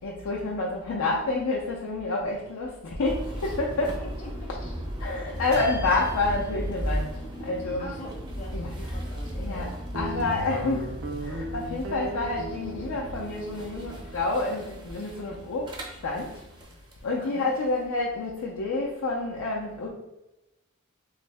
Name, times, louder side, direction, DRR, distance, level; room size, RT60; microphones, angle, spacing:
voice 1, 0.0-3.9 5.0-7.9 8.5-8.7 9.4-9.7 9.9-16.4 17.0-19.9, left 3 dB, 75° left, -3 dB, 0.5 m, -29 dB
sound 1, 3.0-17.0, equal, 25° right, 0.5 m, -36 dB
voice 2, 3.8-4.5 7.8-10.2 17.2-17.5, left 1 dB, 35° left, -1 dB, 0.7 m, -44 dB
sound 2, 5.4-9.8 10.1-11.5 11.8-13.0, equal, 90° right, 1.4 m, -46 dB
Guitar, 9.9-16.6, right 1 dB, 70° right, 0.6 m, -38 dB
3.1 x 2.6 x 3.3 m, 0.93 s
head